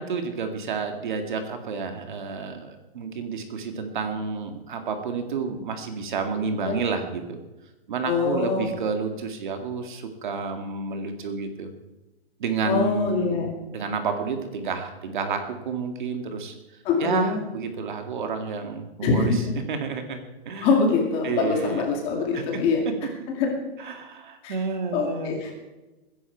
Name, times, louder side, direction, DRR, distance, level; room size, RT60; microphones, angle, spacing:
voice 1, 0.0-7.4 7.9-11.7 12.4-16.5 17.0-20.7 21.2-21.8 22.3-22.6 23.8-25.4, right 5 dB, 50° right, 6 dB, 2.1 m, -30 dB
voice 2, 8.0-8.7 12.6-13.5 16.8-17.4 19.0-19.4 20.6-22.8 23.3-23.5 24.4-24.6 24.9-25.5, left 4 dB, 20° left, 1 dB, 2.2 m, -24 dB
21.0 x 10.5 x 4.6 m, 1.1 s
hypercardioid pair, 175°, 32 cm